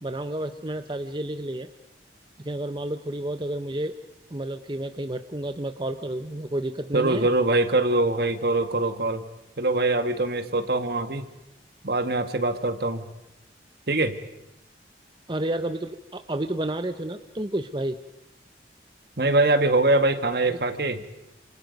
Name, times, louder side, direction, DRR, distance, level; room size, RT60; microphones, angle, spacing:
voice 1, 0.0-1.7 2.4-3.9 4.3-7.3 15.3-18.0 20.5-20.6, right 1 dB, 25° right, 8 dB, 0.8 m, -30 dB
voice 2, 6.9-9.2 9.6-11.3 11.8-13.0 13.9-14.2 19.2-21.0, right 2 dB, 60° right, 9 dB, 1.7 m, -23 dB
29.0 x 27.0 x 5.3 m, 0.87 s
head